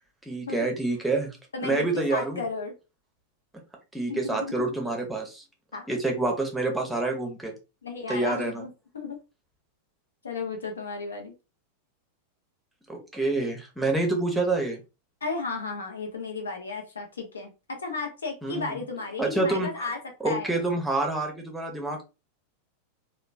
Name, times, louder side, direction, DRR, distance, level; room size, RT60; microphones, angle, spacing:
voice 1, 0.3-1.4 1.6-2.4 3.9-5.4 5.9-7.5 8.1-8.6 12.9-14.8 18.4-18.7 19.2-19.9 20.2-22.0, right 2 dB, 5° right, 1 dB, 0.7 m, -27 dB
voice 2, 1.5-2.7 4.1-4.5 5.7-5.9 7.8-8.7 8.9-9.2 10.2-11.3 15.2-20.0 20.2-20.6, left 4 dB, 70° left, 3 dB, 0.6 m, -34 dB
2.9 x 2.1 x 2.3 m, 0.29 s
figure-of-eight pair, 90°, 0 cm